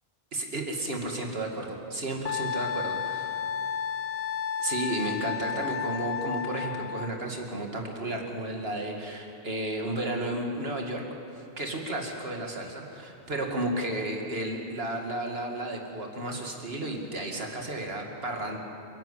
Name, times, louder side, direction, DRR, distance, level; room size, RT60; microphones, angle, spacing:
voice 1, 0.3-3.4 4.6-11.0 11.6-18.6, right 1 dB, 65° right, 1 dB, 2.6 m, -33 dB
Wind instrument woodwind instrument, 2.2-7.1, left 8 dB, 50° left, 0.5 m, -32 dB
28.5 x 11.0 x 8.4 m, 3.0 s
omnidirectional pair, 1.1 m